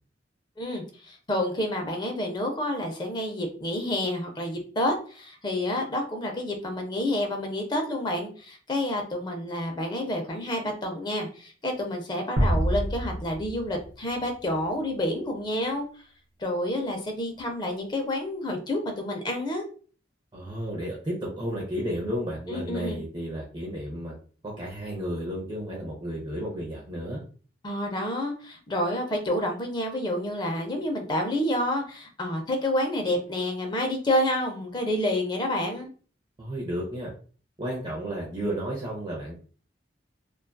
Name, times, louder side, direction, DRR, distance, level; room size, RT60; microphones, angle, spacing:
voice 1, 0.6-15.8 16.4-19.7 22.5-23.0 27.6-35.9, left 1 dB, 25° left, 3 dB, 0.5 m, -29 dB
sound 1, 12.4-14.8, right 1 dB, 65° right, 0.6 m, -27 dB
voice 2, 20.3-24.1 24.4-27.2 36.4-37.1 37.6-39.4, equal, 25° right, -3 dB, 0.6 m, -32 dB
2.6 x 2.3 x 2.2 m, 0.40 s
head